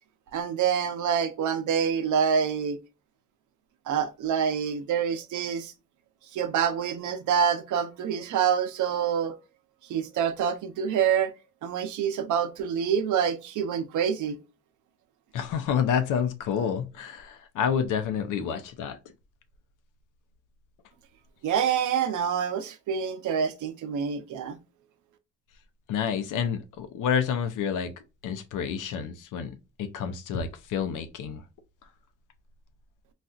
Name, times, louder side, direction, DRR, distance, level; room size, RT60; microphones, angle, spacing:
voice 1, 0.3-2.8 3.9-5.7 6.3-9.4 9.9-11.3 11.6-14.4 21.4-24.6, right 7 dB, 70° right, 0.7 m, -26 dB
voice 2, 15.3-19.0 25.9-27.9 28.2-31.4, left 7 dB, 80° left, 0.7 m, -29 dB
4.1 x 2.4 x 2.3 m
cardioid pair, 105°, 31 cm